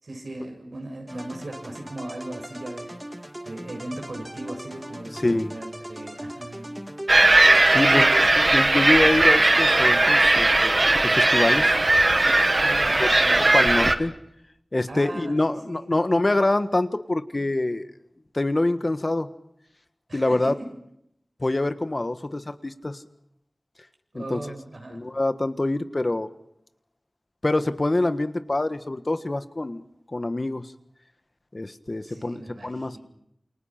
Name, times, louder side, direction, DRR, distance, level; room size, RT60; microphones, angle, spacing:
voice 1, 0.0-2.9 3.4-6.7 7.7-8.1 12.5-13.9 14.9-16.0 20.1-20.5 24.1-25.1 32.0-33.0, right 1 dB, 85° right, 2 dB, 7.6 m, -38 dB
sound 1, 1.1-8.8, right 1 dB, 20° right, 2.6 m, -39 dB
voice 2, 5.1-5.5 7.7-11.7 13.0-13.1 13.4-14.1 14.7-17.9 18.3-19.3 20.1-20.5 21.4-23.0 24.1-24.4 24.9-26.3 27.4-29.8 30.1-30.7 31.5-33.0, left 2 dB, 45° left, 10 dB, 1.5 m, -25 dB
sound 2, 7.1-14.0, right 2 dB, 50° right, 1.6 m, -18 dB
29.0 x 28.5 x 5.9 m, 0.76 s
wide cardioid pair, 60°, 0 cm